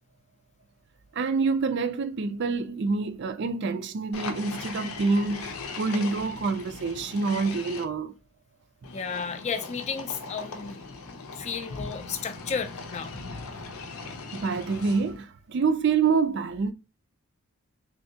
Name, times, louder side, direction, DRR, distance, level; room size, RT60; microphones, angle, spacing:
voice 1, 1.1-8.1 14.3-16.7, right 4 dB, 55° right, 0.4 m, -27 dB
sound 1, 4.1-7.8 8.8-15.2, left 4 dB, 85° left, 0.6 m, -39 dB
voice 2, 8.9-10.8 11.3-13.1, left 6 dB, 30° left, 0.3 m, -33 dB
3.3 x 2.6 x 2.7 m
head